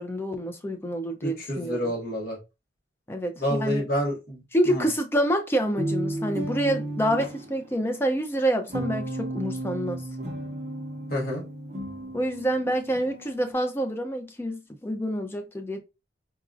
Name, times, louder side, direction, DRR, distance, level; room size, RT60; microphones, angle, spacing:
voice 1, 0.0-1.9 3.1-3.8 4.5-10.0 12.1-15.8, equal, 10° left, 0.4 m, -27 dB
voice 2, 1.2-2.4 3.4-4.4 4.7-4.8 11.1-11.4, equal, 50° left, 1.3 m, -28 dB
sound 1, 5.8-7.7 8.7-13.5, right 1 dB, 35° right, 0.8 m, -33 dB
4.0 x 2.4 x 2.4 m
head